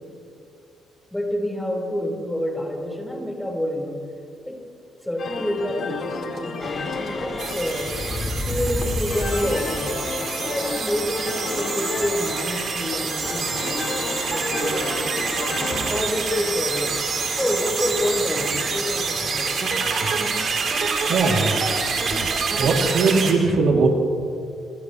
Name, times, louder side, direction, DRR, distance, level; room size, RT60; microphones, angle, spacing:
voice 1, 1.1-4.0 4.5-4.6 5.0-8.0 8.4-10.0 10.4-15.5 15.9-17.0 17.4-19.6, left 1 dB, 10° left, -1 dB, 5.1 m, -28 dB
sound 1, 5.2-16.1, left 4 dB, 55° left, 3.0 m, -32 dB
sound 2, 6.6-22.9, left 2 dB, 30° left, 4.4 m, -34 dB
sound 3, 7.4-23.3, right 5 dB, 55° right, 3.9 m, -27 dB
voice 2, 21.1-21.5 22.6-23.9, right 4 dB, 75° right, 0 dB, 3.1 m, -19 dB
29.5 x 27.0 x 3.3 m, 2.5 s
cardioid pair, 90°, 0 cm